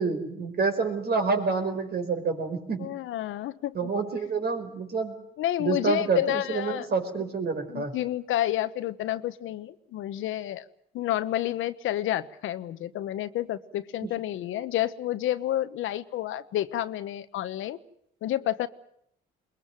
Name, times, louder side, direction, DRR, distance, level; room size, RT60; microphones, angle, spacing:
voice 1, 0.0-2.9 3.7-5.2 5.6-7.9 14.0-14.1, right 4 dB, 55° right, 6 dB, 5.1 m, -28 dB
voice 2, 2.8-3.9 5.4-6.9 7.7-10.6 10.9-17.8 18.2-18.7, left 13 dB, 85° left, 12 dB, 1.2 m, -30 dB
22.0 x 21.5 x 9.2 m, 0.70 s
cardioid pair, 90°, 20 cm